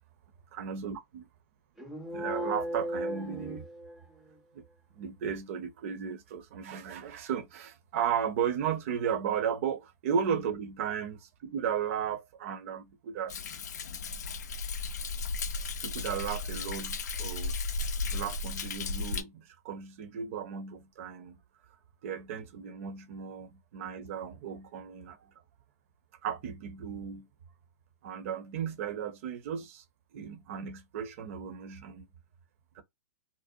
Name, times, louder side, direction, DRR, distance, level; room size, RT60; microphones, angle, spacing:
voice 1, 0.6-1.2 2.1-3.6 4.5-4.6 4.9-11.2 11.4-13.3 15.8-17.5 18.1-21.4 22.0-25.2 26.2-27.3 28.0-29.8 30.1-32.1 32.8-32.9, right 8 dB, 55° right, 0.6 m, -35 dB
sound 1, 1.8-4.3, equal, ahead, 0.5 m, -36 dB
Thunder, 13.3-19.2, left 4 dB, 85° left, 0.4 m, -35 dB
2.6 x 2.0 x 2.5 m
hypercardioid pair, 140°, 9 cm